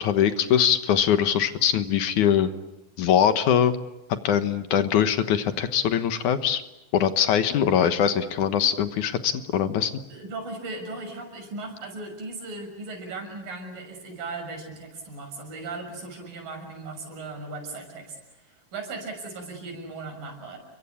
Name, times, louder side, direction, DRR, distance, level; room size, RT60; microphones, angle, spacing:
voice 1, 0.0-2.5 3.0-3.8 4.2-6.6 6.9-9.9, left 9 dB, 70° left, 10 dB, 2.6 m, -22 dB
voice 2, 10.1-20.6, right 3 dB, 85° right, 4 dB, 8.1 m, -37 dB
30.0 x 23.5 x 8.5 m, 0.94 s
omnidirectional pair, 3.9 m